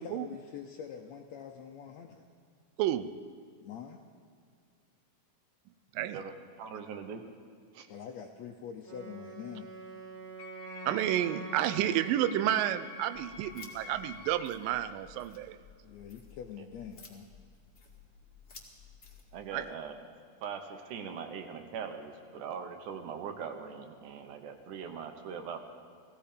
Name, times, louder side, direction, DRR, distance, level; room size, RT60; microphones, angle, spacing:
voice 1, 0.0-2.2 3.6-4.0 7.9-9.7 15.8-17.3, left 8 dB, 75° left, 3 dB, 1.6 m, -45 dB
voice 2, 2.8-3.1 5.9-6.2 10.9-15.6 19.5-19.7, right 12 dB, 90° right, 12 dB, 2.3 m, -30 dB
voice 3, 6.0-7.2 7.7-7.9 16.6-16.7 19.3-19.9 20.4-25.6, right 6 dB, 75° right, 6 dB, 2.4 m, -41 dB
Wind instrument woodwind instrument, 8.8-12.8, right 4 dB, 45° right, 1.2 m, -46 dB
Wind instrument woodwind instrument 2, 10.4-14.7, left 5 dB, 60° left, 1.9 m, -47 dB
sound 1, 13.1-19.7, left 4 dB, 30° left, 1.5 m, -55 dB
17.0 x 16.0 x 5.1 m, 2.1 s
omnidirectional pair, 3.8 m